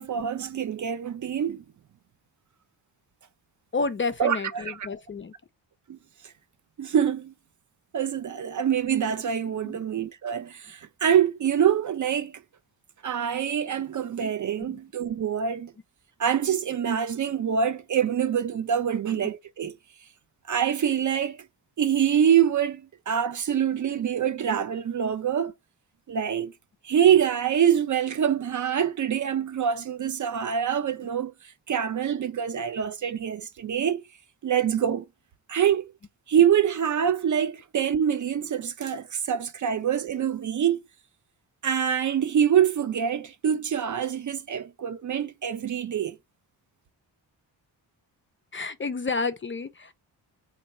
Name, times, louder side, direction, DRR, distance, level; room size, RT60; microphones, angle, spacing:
voice 1, 0.0-1.6 4.2-4.9 5.9-6.0 6.2-6.3 6.8-7.3 7.9-12.3 13.0-15.7 16.2-19.8 20.5-21.4 21.8-25.5 26.1-26.5 26.8-34.0 34.4-35.0 35.5-35.9 36.3-40.8 41.6-46.2, right 8 dB, 40° right, 0.5 m, -25 dB
voice 2, 3.7-5.3 9.6-9.7 14.6-14.8 48.5-49.9, left 4 dB, 25° left, 0.4 m, -30 dB
3.0 x 2.6 x 4.2 m
supercardioid pair, 50°, 47 cm